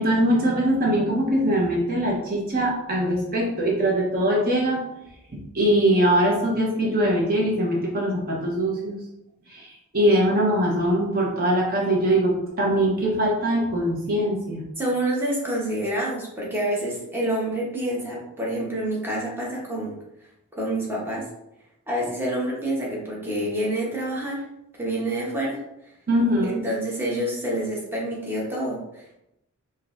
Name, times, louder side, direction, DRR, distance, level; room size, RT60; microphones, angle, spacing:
voice 1, 0.0-4.8 5.3-9.0 9.5-9.7 9.9-14.6 26.1-26.7, right 1 dB, 40° right, -2 dB, 0.8 m, -22 dB
voice 2, 14.8-19.9 20.5-21.2 21.9-24.4 24.8-25.6 26.4-29.2, right 1 dB, 10° right, -4 dB, 0.9 m, -27 dB
5.1 x 2.7 x 2.5 m, 0.84 s
head